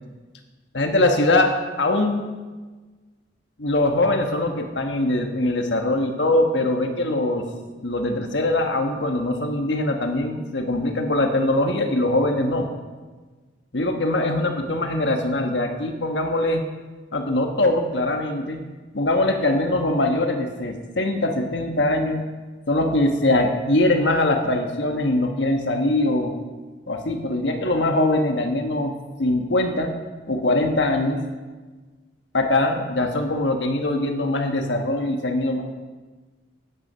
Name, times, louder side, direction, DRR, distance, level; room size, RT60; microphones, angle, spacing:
voice 1, 0.7-2.3 3.6-7.5 7.8-12.7 13.7-16.6 17.1-18.6 18.9-22.3 22.7-26.3 26.9-29.9 30.3-31.2 32.3-35.6, left 1 dB, 85° left, 4 dB, 1.3 m, -22 dB
14.0 x 9.6 x 5.6 m, 1.3 s
head